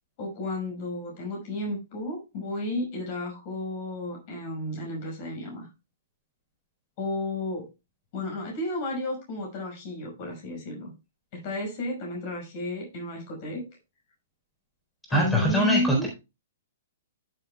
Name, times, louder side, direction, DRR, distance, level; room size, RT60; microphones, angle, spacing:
voice 1, 0.2-5.7 7.0-7.7 8.1-10.9 11.3-13.6 15.1-16.1, left 2 dB, 40° left, 0 dB, 5.8 m, -32 dB
voice 2, 15.1-16.1, equal, 5° left, -1 dB, 4.2 m, -23 dB
13.5 x 7.9 x 2.3 m, 0.27 s
figure-of-eight pair, 115°, 0 cm